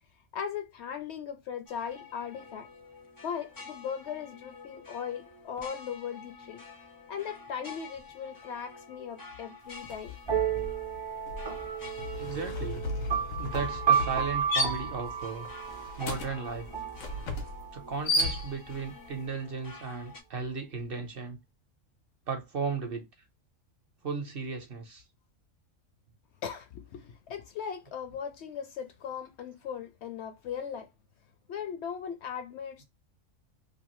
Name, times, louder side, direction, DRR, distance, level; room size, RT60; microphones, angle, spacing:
voice 1, 0.3-2.7 3.2-6.6 7.1-10.2 26.4-30.9 31.5-32.8, left 7 dB, 65° left, 0.7 m, -38 dB
sound 1, 1.7-20.2, left 4 dB, 25° left, 0.5 m, -49 dB
sound 2, 9.8-10.1 10.4-18.9, left 2 dB, 85° left, 1.1 m, -34 dB
sound 3, 10.3-17.8, right 8 dB, 35° right, 0.4 m, -32 dB
voice 2, 12.2-12.8 13.4-15.5 16.0-16.7 17.7-21.4 22.3-23.1 24.0-25.0, right 5 dB, 55° right, 0.8 m, -35 dB
2.8 x 2.5 x 2.9 m
omnidirectional pair, 1.4 m